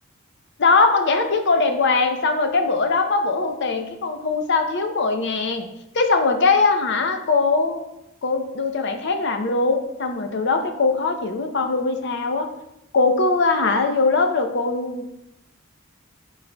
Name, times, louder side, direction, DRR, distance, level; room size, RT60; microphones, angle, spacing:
voice 1, 0.6-5.7 5.9-7.9 8.2-12.5 12.9-15.2, left 3 dB, 60° left, 6 dB, 0.6 m, -21 dB
11.5 x 4.1 x 2.2 m, 0.87 s
head